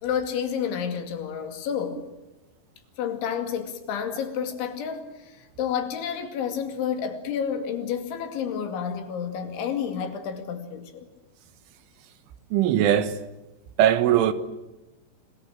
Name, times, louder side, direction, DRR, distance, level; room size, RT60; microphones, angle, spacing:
voice 1, 0.0-2.0 3.0-11.1, left 7 dB, 75° left, 4.7 m, -30 dB
voice 2, 12.5-13.1 13.8-14.3, right 11 dB, 90° right, 3.8 m, -20 dB
27.0 x 21.0 x 9.1 m
omnidirectional pair, 5.4 m